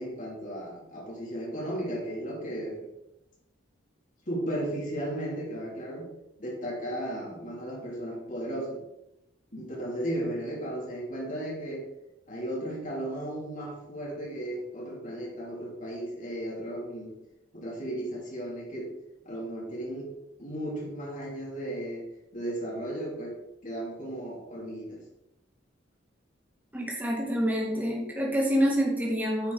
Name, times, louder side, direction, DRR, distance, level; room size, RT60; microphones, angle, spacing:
voice 1, 0.0-2.8 4.3-6.1 6.4-8.8 9.5-11.9 12.3-17.2 17.5-18.9 19.2-20.1 20.4-22.1 22.3-25.0, right 1 dB, 40° left, -3 dB, 3.2 m, -35 dB
voice 2, 26.7-29.5, equal, 10° right, -4 dB, 2.3 m, -27 dB
9.9 x 6.1 x 4.1 m, 0.87 s
head